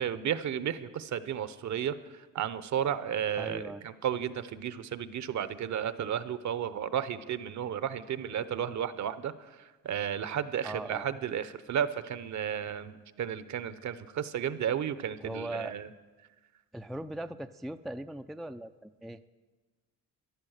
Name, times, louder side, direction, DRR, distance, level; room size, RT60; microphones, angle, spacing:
voice 1, 0.0-1.9 2.3-9.3 9.8-15.9, right 9 dB, 60° right, 14 dB, 0.8 m, -33 dB
voice 2, 3.4-3.8 10.6-11.1 15.2-15.8 16.7-19.2, right 1 dB, ahead, 8 dB, 0.4 m, -39 dB
14.0 x 11.0 x 6.4 m, 1.3 s
cardioid pair, 85°, 34 cm